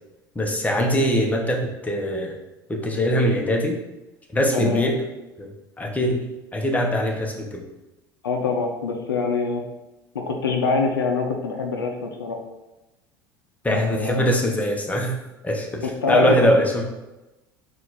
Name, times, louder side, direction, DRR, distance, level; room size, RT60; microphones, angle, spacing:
voice 1, 0.3-2.3 2.7-3.8 4.3-5.0 5.4-5.5 5.8-6.2 6.5-7.6 13.6-15.1 15.4-16.8, equal, 10° left, 0 dB, 1.0 m, -22 dB
voice 2, 8.2-9.6 10.1-12.4 13.7-14.3 15.8-16.5, left 4 dB, 90° left, 2 dB, 0.5 m, -24 dB
4.3 x 2.6 x 3.9 m, 1.0 s
hypercardioid pair, 70°, 12 cm